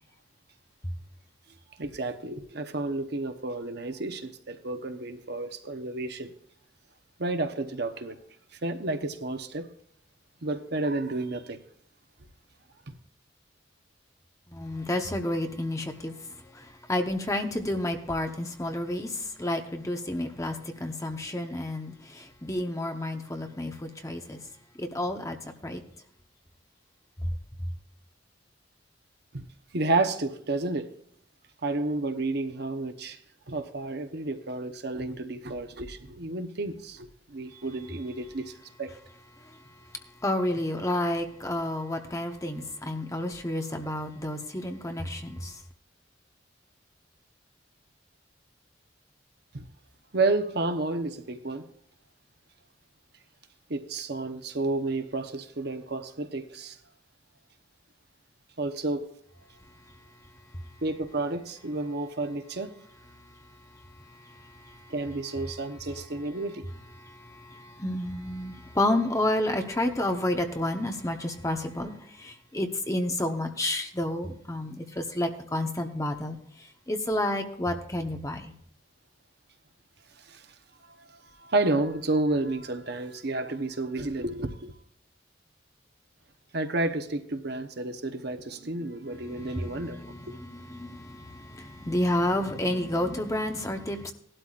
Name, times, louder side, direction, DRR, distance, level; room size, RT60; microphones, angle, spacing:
voice 1, 1.8-6.3 7.2-8.2 8.6-9.7 10.4-11.6 12.9-13.0 29.3-29.5 29.7-30.9 31.6-33.2 33.5-38.5 38.8-38.9 49.5-49.6 50.1-51.7 53.7-56.8 58.6-59.1 60.8-62.7 64.9-66.7 80.2-80.5 80.8-84.7 86.5-90.1, right 2 dB, 60° right, 1.0 m, -31 dB
voice 2, 14.5-16.2 16.5-24.4 24.8-25.4 25.6-25.8 27.2-27.3 39.4-39.6 40.2-45.6 64.2-64.9 67.0-76.4 76.9-78.5 89.2-94.1, left 1 dB, 15° left, 1.1 m, -30 dB
18.0 x 12.0 x 2.5 m
head